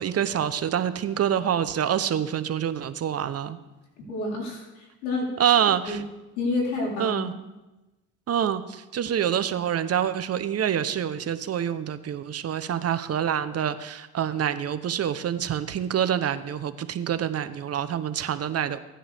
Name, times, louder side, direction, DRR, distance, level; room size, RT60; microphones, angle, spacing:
voice 1, 0.0-3.6 5.4-6.0 7.0-7.3 8.3-18.8, right 9 dB, 45° right, 12 dB, 0.9 m, -26 dB
voice 2, 4.1-5.3 5.9-6.0 6.3-7.2, left 3 dB, 90° left, -2 dB, 4.0 m, -29 dB
16.0 x 10.0 x 3.5 m, 1.1 s
supercardioid pair, 75°, 35 cm